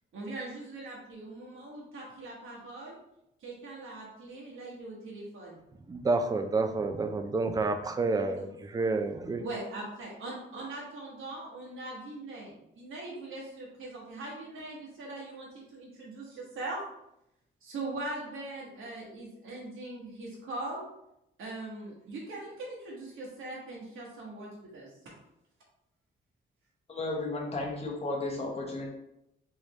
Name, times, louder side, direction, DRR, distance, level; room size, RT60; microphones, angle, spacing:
voice 1, 0.1-2.9 3.4-5.6 8.4-8.5 9.4-16.8 17.6-20.8 21.4-24.9, right 2 dB, 90° right, -4 dB, 1.2 m, -41 dB
voice 2, 5.9-9.5, right 3 dB, 20° right, 7 dB, 0.3 m, -29 dB
voice 3, 26.9-28.9, left 2 dB, 30° left, -1 dB, 1.0 m, -33 dB
3.8 x 3.2 x 3.1 m, 0.82 s
wide cardioid pair, 140°, 20 cm